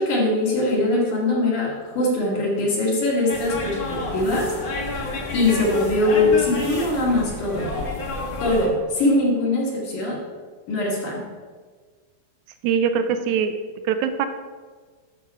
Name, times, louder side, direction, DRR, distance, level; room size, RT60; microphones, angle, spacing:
voice 1, 0.0-4.5 5.3-7.7 8.4-10.2 10.7-11.2, left 2 dB, 70° left, -3 dB, 3.4 m, -22 dB
sound 1, 3.3-8.7, left 2 dB, 50° left, 1.6 m, -30 dB
voice 2, 12.6-13.6 13.9-14.3, right 7 dB, 80° right, 9 dB, 1.8 m, -22 dB
10.0 x 6.8 x 4.8 m, 1.5 s
omnidirectional pair, 3.7 m